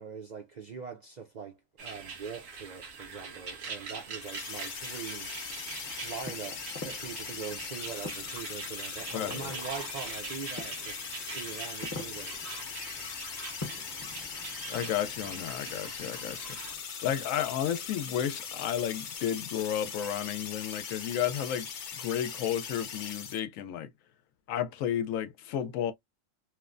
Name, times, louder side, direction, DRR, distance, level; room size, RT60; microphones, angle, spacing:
voice 1, 0.0-5.3 6.0-11.0 11.3-12.9, right 6 dB, 60° right, 0.4 m, -42 dB
sound 1, 1.8-16.7, right 5 dB, 90° right, 1.2 m, -43 dB
sound 2, 4.2-23.4, left 6 dB, 55° left, 0.6 m, -40 dB
sound 3, 5.3-16.8, left 2 dB, 30° left, 0.9 m, -48 dB
voice 2, 9.1-9.5 14.7-16.5 17.0-21.7 22.0-23.9 24.5-25.9, left 10 dB, 85° left, 1.0 m, -32 dB
3.0 x 2.1 x 2.4 m
omnidirectional pair, 1.3 m